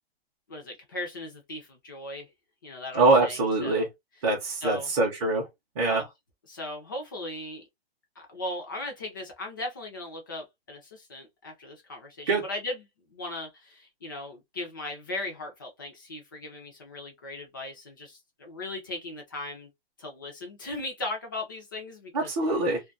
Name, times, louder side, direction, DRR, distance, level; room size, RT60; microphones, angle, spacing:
voice 1, 0.5-2.3 2.6-3.9 4.6-4.9 5.9-6.1 6.5-7.6 8.2-12.8 13.1-19.7 20.0-22.3, left 2 dB, 20° left, 0.4 m, -38 dB
voice 2, 2.9-3.9 4.2-5.5 5.8-6.0 12.3-12.4 22.1-22.8, right 3 dB, 30° right, 0.5 m, -23 dB
2.2 x 2.2 x 2.4 m
hypercardioid pair, 170°, 31 cm